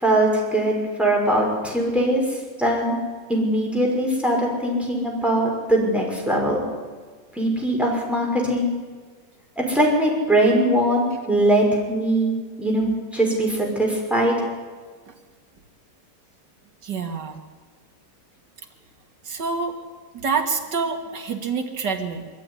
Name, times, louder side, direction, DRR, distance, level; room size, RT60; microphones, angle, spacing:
voice 1, 0.0-2.2 2.6-3.0 3.3-6.6 7.3-8.7 9.6-12.3 12.6-14.4, right 1 dB, ahead, -1 dB, 5.9 m, -21 dB
voice 2, 16.8-17.4 19.3-19.8 20.1-22.3, right 5 dB, 90° right, 4 dB, 2.7 m, -27 dB
23.0 x 13.5 x 10.0 m, 1.4 s
omnidirectional pair, 1.8 m